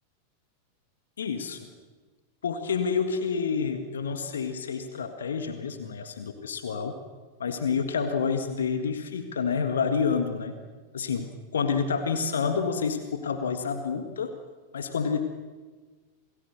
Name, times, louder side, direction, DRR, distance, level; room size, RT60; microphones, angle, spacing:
voice 1, 1.2-1.6 2.4-7.0 7.4-10.6 10.9-14.3 14.7-15.2, left 6 dB, 65° left, 7 dB, 1.8 m, -28 dB
29.0 x 19.0 x 6.5 m, 1.4 s
figure-of-eight pair, 90°, 0 cm